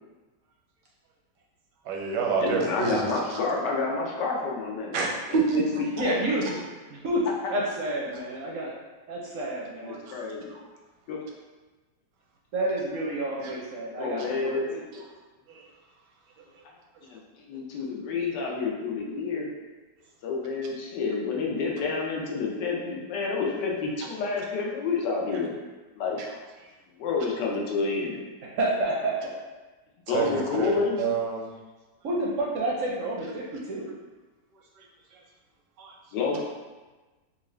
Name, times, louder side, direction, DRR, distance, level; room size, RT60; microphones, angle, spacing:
voice 1, 1.8-3.1 4.9-5.8 8.1-8.2 9.9-10.1 10.5-10.6 13.4-13.5 15.5-15.6 30.1-30.7 31.0-31.5 35.8-35.9, right 4 dB, 80° right, -1 dB, 1.3 m, -28 dB
voice 2, 2.4-5.0 5.3-5.6 6.0-6.3 9.8-10.5 11.1-11.2 14.0-14.8 16.6-19.5 20.2-25.6 25.9-26.2 27.0-28.2 30.1-31.0 36.1-36.4, left 4 dB, 90° left, -2 dB, 1.4 m, -29 dB
voice 3, 6.0-6.4 6.9-7.2 7.5-8.7 9.1-10.0 12.5-14.6 28.6-29.3 32.0-33.4 33.7-33.9, right 1 dB, 65° right, -4 dB, 0.8 m, -29 dB
4.0 x 2.4 x 3.2 m, 1.2 s
omnidirectional pair, 1.8 m